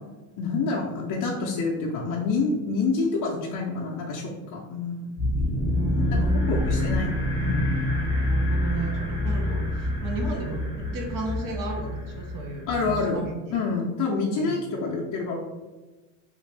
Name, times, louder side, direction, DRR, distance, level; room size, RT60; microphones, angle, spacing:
voice 1, 0.4-5.2 6.1-7.7 12.7-13.2 13.5-15.4, left 4 dB, 45° left, -2 dB, 0.5 m, -27 dB
sound 1, 5.2-13.3, left 1 dB, 10° right, 0.8 m, -27 dB
voice 2, 5.6-6.6 8.2-13.4 14.4-14.5, right 3 dB, 45° right, 2 dB, 0.8 m, -34 dB
2.9 x 2.5 x 3.3 m, 1.2 s
supercardioid pair, 110°, 45 cm